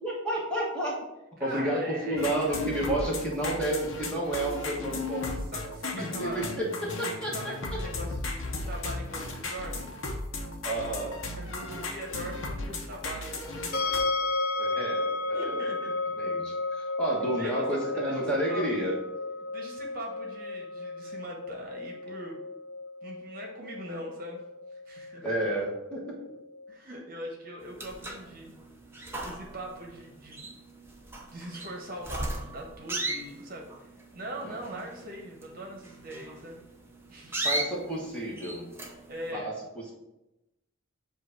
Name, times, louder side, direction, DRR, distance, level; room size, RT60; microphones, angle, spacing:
voice 1, 0.0-1.0 1.4-5.3 5.9-6.7 7.0-7.8 10.6-11.2 14.6-15.6 16.2-18.9 25.2-26.2 34.4-34.8 37.4-38.7 39.3-39.5, right 1 dB, 5° left, -4 dB, 1.4 m, -31 dB
voice 2, 1.4-2.4 5.5-6.5 7.3-9.9 11.3-13.7 15.3-15.9 17.4-19.0 19.5-22.4 23.0-24.4 24.7-25.3 26.7-28.6 28.9-30.5 31.3-36.6 37.1-37.4 39.1-39.5, equal, 40° right, 0 dB, 1.1 m, -41 dB
sound 1, 2.2-14.0, left 2 dB, 65° left, 1.0 m, -36 dB
sound 2, 13.7-26.7, left 3 dB, 45° left, 0.7 m, -34 dB
sound 3, 27.6-39.3, right 1 dB, 10° right, 0.8 m, -37 dB
7.8 x 2.7 x 5.8 m, 0.92 s
head